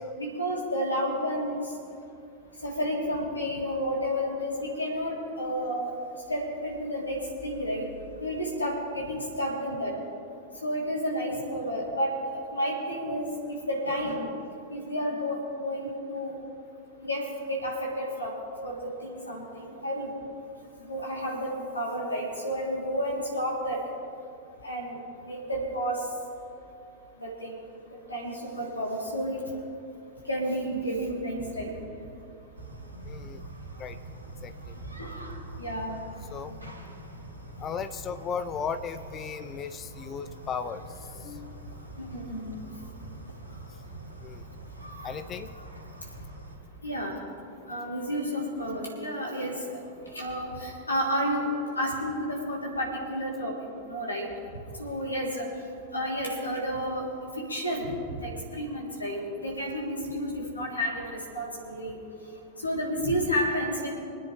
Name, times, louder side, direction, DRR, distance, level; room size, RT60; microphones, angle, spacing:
voice 1, 0.2-1.6 2.6-5.9 6.3-7.9 8.2-9.9 10.6-13.2 13.7-14.3 14.7-16.3 17.0-17.2 17.5-18.3 18.6-20.1 20.9-23.8 24.6-25.0 25.2-26.0 27.2-27.6 28.1-29.4 30.3-31.7 35.0-35.1 35.6-35.9 42.0-42.5 46.8-47.1 47.7-49.8 50.2-53.5 53.9-54.3 54.8-55.4 55.9-57.0 57.4-57.9 58.2-62.0 62.6-63.9, equal, 80° left, -3 dB, 3.4 m, -31 dB
sound 1, 32.6-46.6, right 2 dB, 80° right, 2.6 m, -44 dB
voice 2, 33.1-33.4 33.8-34.0 34.4-34.5 36.3-36.5 37.6-40.8 41.1-41.9 44.2-44.4 45.0-45.5, left 6 dB, 30° left, 10 dB, 0.8 m, -36 dB
25.5 x 9.7 x 3.4 m, 2.6 s
figure-of-eight pair, 90°, 0 cm